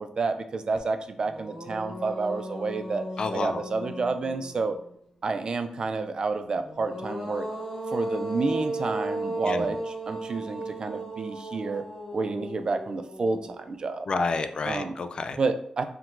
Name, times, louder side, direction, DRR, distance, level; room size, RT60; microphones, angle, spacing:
voice 1, 0.0-3.0 3.3-4.8 5.2-7.5 7.9-11.8 12.1-14.1 14.7-15.0 15.4-15.8, right 4 dB, 40° right, 9 dB, 0.4 m, -29 dB
sound 1, 0.8-0.9 1.2-4.9 6.6-13.8, right 1 dB, 25° left, 0.8 m, -36 dB
voice 2, 3.2-3.6 9.4-9.7 14.1-15.4, left 4 dB, 45° left, 9 dB, 0.3 m, -29 dB
4.5 x 3.8 x 2.6 m, 0.65 s
wide cardioid pair, 150°, 2 cm